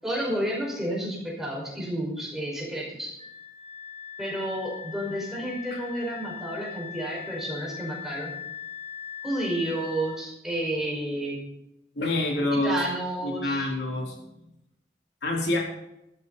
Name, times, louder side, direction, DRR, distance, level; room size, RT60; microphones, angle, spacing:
voice 1, 0.0-3.1 4.2-8.3 9.2-11.4 12.5-13.7, right 1 dB, ahead, -4 dB, 5.3 m, -31 dB
Wind instrument woodwind instrument, 3.2-10.2, left 8 dB, 40° right, 2.0 m, -40 dB
voice 2, 12.0-12.8 13.2-14.2 15.2-15.6, left 2 dB, 75° left, -1 dB, 4.1 m, -26 dB
14.5 x 13.5 x 4.2 m, 0.85 s
head